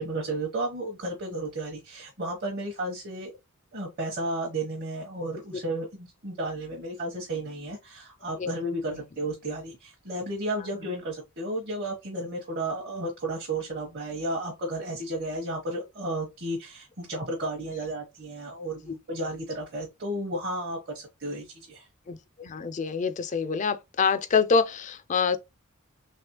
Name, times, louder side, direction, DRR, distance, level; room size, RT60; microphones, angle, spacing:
voice 1, 0.0-3.3 3.7-21.9, right 1 dB, 50° right, 0.9 m, -33 dB
voice 2, 22.1-25.4, left 5 dB, 35° left, 0.4 m, -26 dB
3.3 x 3.1 x 2.9 m
head